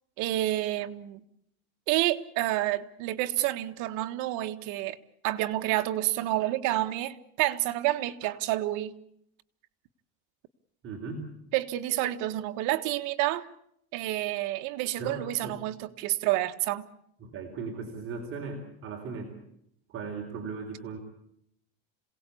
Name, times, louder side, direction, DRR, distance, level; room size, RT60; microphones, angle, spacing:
voice 1, 0.2-1.2 1.9-5.0 5.2-8.9 11.5-13.5 13.9-16.8, right 15 dB, 75° right, 8 dB, 1.5 m, -29 dB
voice 2, 10.8-11.3 15.0-15.6 17.2-19.4 19.9-21.0, right 4 dB, 45° right, 2 dB, 4.1 m, -37 dB
27.0 x 18.0 x 8.5 m, 0.74 s
cardioid pair, 135°, 30 cm